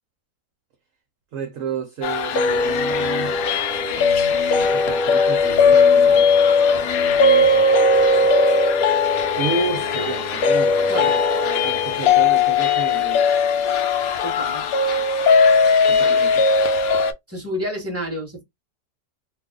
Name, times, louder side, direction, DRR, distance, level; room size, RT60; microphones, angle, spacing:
voice 1, 1.3-3.4 4.7-6.3 9.4-13.5 15.9-16.5, right 5 dB, 60° right, 0.9 m, -30 dB
sound 1, 2.0-17.1, left 4 dB, 65° left, 0.9 m, -18 dB
sound 2, 2.5-12.7, left 1 dB, 40° left, 0.9 m, -33 dB
voice 2, 14.2-14.6 17.3-18.4, equal, 10° right, 1.0 m, -29 dB
2.8 x 2.3 x 3.7 m
omnidirectional pair, 1.9 m